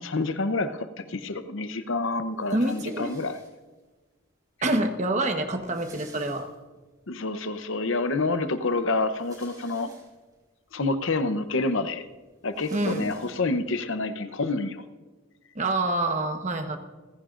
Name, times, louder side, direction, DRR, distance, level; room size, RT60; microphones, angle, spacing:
voice 1, 0.0-3.4 7.1-9.9 10.7-12.1 12.4-14.8, left 3 dB, 60° left, 10 dB, 0.8 m, -28 dB
sound 1, 2.4-3.8 4.7-4.8 5.0-5.1 5.3-6.9 7.4-7.5 8.9-10.4 11.0-11.1 11.4-13.7, right 3 dB, 20° right, 4.5 m, -54 dB
voice 2, 2.5-3.1 4.6-6.5 12.7-13.1 15.5-16.8, right 2 dB, 35° right, 5 dB, 1.2 m, -26 dB
29.0 x 15.0 x 2.5 m, 1.3 s
head